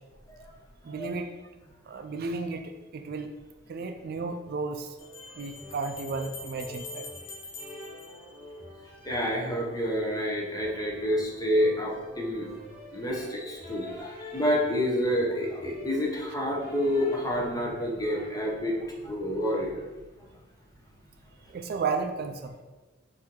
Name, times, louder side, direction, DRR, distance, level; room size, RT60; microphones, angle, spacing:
voice 1, 0.8-1.3 1.9-3.3 3.7-4.9 5.4-7.1 21.5-22.5, right 4 dB, 50° right, 5 dB, 0.3 m, -33 dB
sound 1, 3.4-3.5 5.0-9.0, left 3 dB, 70° left, 0.9 m, -45 dB
sound 2, 5.0-17.5, left 1 dB, 10° right, 1.3 m, -47 dB
voice 2, 9.0-12.5 12.9-19.9 20.2-20.3, equal, 20° left, -2 dB, 0.7 m, -28 dB
4.4 x 2.7 x 3.6 m, 1.2 s
head